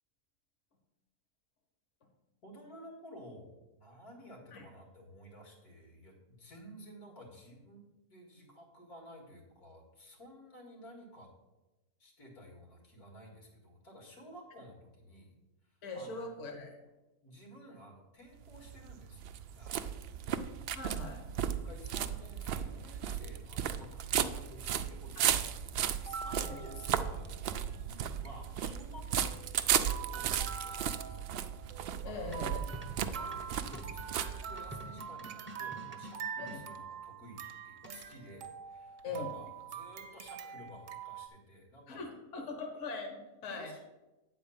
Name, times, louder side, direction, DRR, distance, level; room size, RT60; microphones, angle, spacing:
voice 1, 2.4-11.3 12.0-15.3 15.9-16.2 17.2-19.2 19.6-20.2 21.6-31.3 32.0-32.4 33.1-42.0 43.1-43.8, equal, 85° left, 0 dB, 2.5 m, -53 dB
voice 2, 15.8-16.7 20.3-20.4 20.7-21.2 25.2-25.3 26.4-26.6 32.0-33.0 36.4-36.6 39.0-39.4 41.9-43.7, left 3 dB, 55° left, 3 dB, 1.3 m, -41 dB
sound 1, 18.4-34.9, right 9 dB, 85° right, 0.5 m, -35 dB
sound 2, 25.8-27.5 27.8-27.9 28.1-28.3 28.8-29.6 29.9-41.3, right 7 dB, 65° right, 1.0 m, -45 dB
sound 3, 32.3-36.6 37.8-38.3, right 1 dB, 10° right, 0.5 m, -49 dB
8.8 x 4.3 x 7.0 m, 1.1 s
omnidirectional pair, 1.6 m